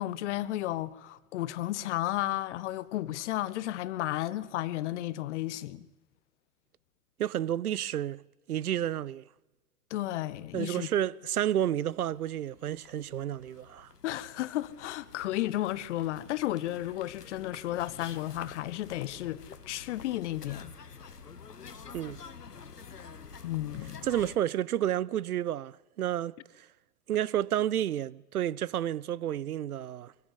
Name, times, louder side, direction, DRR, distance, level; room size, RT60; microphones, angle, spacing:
voice 1, 0.0-5.9 9.9-10.9 14.0-20.7 23.4-24.1, left 14 dB, 50° left, 1.1 m, -33 dB
voice 2, 7.2-8.2 8.5-9.2 10.5-13.9 21.9-22.2 24.0-26.7 27.1-30.1, right 11 dB, 70° right, 0.7 m, -31 dB
sound 1, 11.6-11.7 11.8-24.4, left 6 dB, 85° left, 1.4 m, -49 dB
23.0 x 14.5 x 8.4 m
figure-of-eight pair, 110°, 46 cm